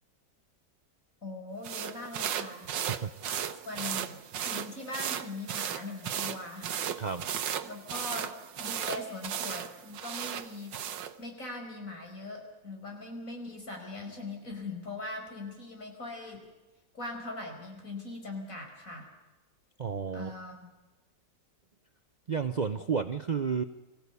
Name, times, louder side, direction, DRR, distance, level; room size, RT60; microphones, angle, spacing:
voice 1, 1.2-2.7 3.6-6.7 7.6-8.3 8.6-10.8 11.2-16.4 16.9-19.1 20.1-20.7, left 2 dB, 45° left, 2 dB, 5.6 m, -41 dB
sound 1, 1.6-11.1, right 9 dB, 85° right, 1.7 m, -36 dB
voice 2, 2.9-3.6 7.0-7.2 19.8-20.3 22.3-23.6, right 6 dB, 60° right, 9 dB, 0.4 m, -32 dB
25.0 x 15.5 x 8.2 m, 1.1 s
omnidirectional pair, 1.9 m